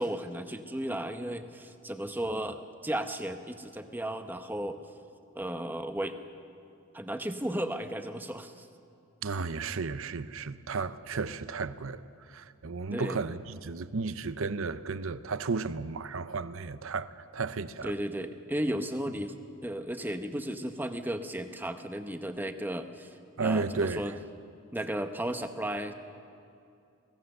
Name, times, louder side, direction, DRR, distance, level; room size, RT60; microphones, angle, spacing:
voice 1, 0.0-4.8 5.3-6.2 6.9-8.7 12.9-13.2 17.8-23.1 23.4-24.1 24.7-25.9, right 1 dB, 10° right, 0.8 m, -34 dB
voice 2, 9.2-12.0 12.3-17.9 23.4-24.2, right 4 dB, 65° right, 0.6 m, -33 dB
22.5 x 17.5 x 6.7 m
head